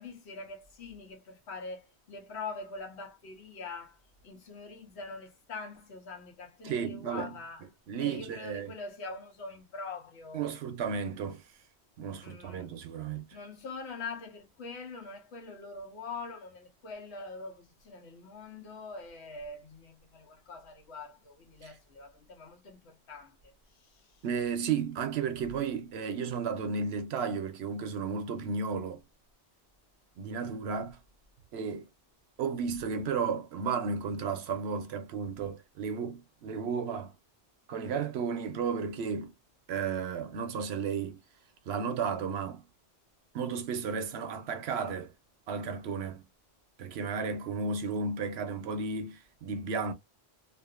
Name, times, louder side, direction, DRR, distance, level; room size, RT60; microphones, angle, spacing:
voice 1, 0.0-7.7 8.0-10.6 12.2-12.8 13.3-24.3, left 3 dB, 80° left, 1.2 m, -44 dB
voice 2, 6.6-7.3 7.9-8.7 10.3-11.4 12.0-13.3 21.6-21.7 24.2-29.0 30.2-31.0 31.5-31.9 32.4-37.1 37.7-39.3 39.7-41.2 41.7-42.6 43.3-45.1 45.5-46.3 46.8-49.9, right 5 dB, 75° right, 0.8 m, -33 dB
2.5 x 2.4 x 2.3 m
omnidirectional pair, 1.1 m